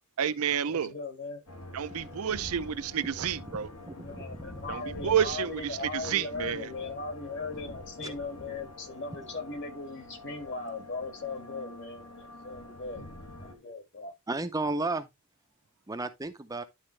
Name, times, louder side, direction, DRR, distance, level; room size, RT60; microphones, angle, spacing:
voice 1, 0.2-0.9 1.7-3.7 4.7-6.7, right 8 dB, 75° right, 0.5 m, -30 dB
voice 2, 0.7-1.4 3.9-13.1 13.4-14.1, left 3 dB, 55° left, 1.9 m, -39 dB
sound 1, 1.5-13.5, left 1 dB, 90° left, 2.2 m, -46 dB
voice 3, 2.0-2.3 3.5-4.5 8.0-8.1 14.3-15.1 15.9-16.6, right 2 dB, 15° right, 0.5 m, -34 dB
11.0 x 4.2 x 3.2 m
head